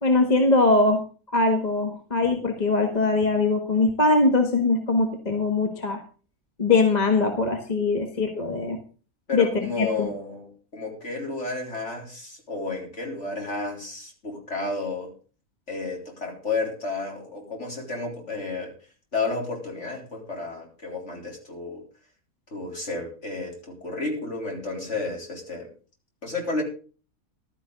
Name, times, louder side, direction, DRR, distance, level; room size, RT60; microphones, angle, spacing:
voice 1, 0.0-1.0 1.3-6.0 6.6-8.8 9.3-9.5 9.8-10.1, left 3 dB, 30° left, 4 dB, 1.5 m, -21 dB
voice 2, 9.3-15.1 15.7-18.7 19.1-21.8 22.5-25.7 26.2-26.6, left 3 dB, 55° left, 0 dB, 4.0 m, -32 dB
14.5 x 12.5 x 3.9 m, 0.38 s
omnidirectional pair, 1.5 m